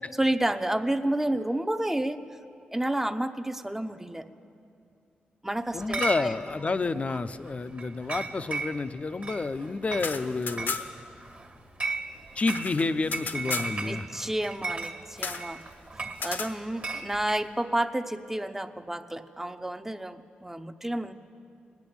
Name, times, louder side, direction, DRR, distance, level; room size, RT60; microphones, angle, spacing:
voice 1, 0.1-2.2 2.7-4.3 5.4-6.7 13.8-15.7 16.2-21.1, right 1 dB, 10° right, 9 dB, 0.7 m, -30 dB
voice 2, 5.7-10.8 12.4-14.1, left 3 dB, 40° left, 11 dB, 0.6 m, -29 dB
Chatter / Chink clink, 5.7-17.4, right 3 dB, 40° right, 1.6 m, -37 dB
sound 1, 9.9-11.1 11.4-11.5 11.7-13.7 15.2-15.5 16.1-16.5, left 4 dB, 70° left, 0.9 m, -35 dB
19.0 x 8.3 x 8.7 m, 2.5 s
cardioid pair, 55°, 4 cm